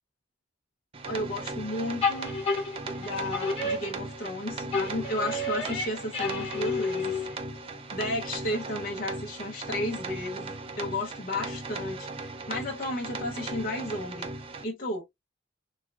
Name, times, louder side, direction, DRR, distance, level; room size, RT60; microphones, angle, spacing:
sound 1, 0.9-14.6, right 3 dB, 30° right, 0.5 m, -38 dB
voice 1, 1.0-2.3 3.0-7.2 7.9-14.3 14.6-15.1, left 1 dB, 45° left, 0.7 m, -33 dB
sound 2, 2.0-4.4 4.7-7.6, left 3 dB, 30° left, 1.4 m, -31 dB
3.4 x 3.1 x 2.4 m
head